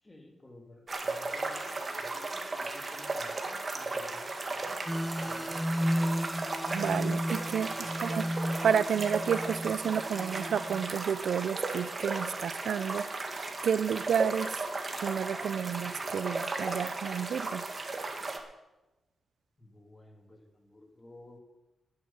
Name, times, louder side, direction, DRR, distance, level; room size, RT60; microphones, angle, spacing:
voice 1, 0.0-5.6 7.6-8.1 19.6-21.4, left 1 dB, 20° left, 2 dB, 2.8 m, -54 dB
sound 1, 0.9-18.4, right 3 dB, 35° right, 1.8 m, -36 dB
sound 2, 4.9-11.0, equal, ahead, 0.3 m, -33 dB
voice 2, 6.7-13.1 13.6-14.6 15.0-17.7, right 8 dB, 75° right, 17 dB, 0.5 m, -31 dB
9.6 x 8.5 x 9.6 m, 1.0 s
cardioid pair, 80°, 0 cm